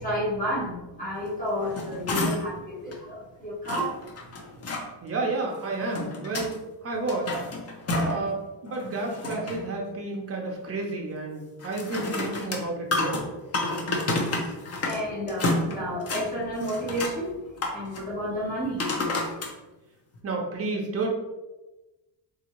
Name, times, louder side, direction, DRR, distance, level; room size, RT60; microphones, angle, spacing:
voice 1, 0.0-3.9 14.8-17.4 17.7-18.8, equal, 20° left, -7 dB, 1.1 m, -31 dB
sound 1, 1.5-2.6 2.9-3.0 3.6-4.8 5.6-6.5 6.9-8.3 8.7-9.7 11.6-15.0 15.3-16.3 16.6-17.2 17.6-18.0 18.8-19.5 20.1-20.2, left 2 dB, 35° left, 0.5 m, -30 dB
voice 2, 5.0-6.5 6.8-7.4 8.1-13.2 20.2-21.1, right 3 dB, 30° right, 0 dB, 0.6 m, -31 dB
3.4 x 2.7 x 2.9 m, 1.1 s
cardioid pair, 170°, 45 cm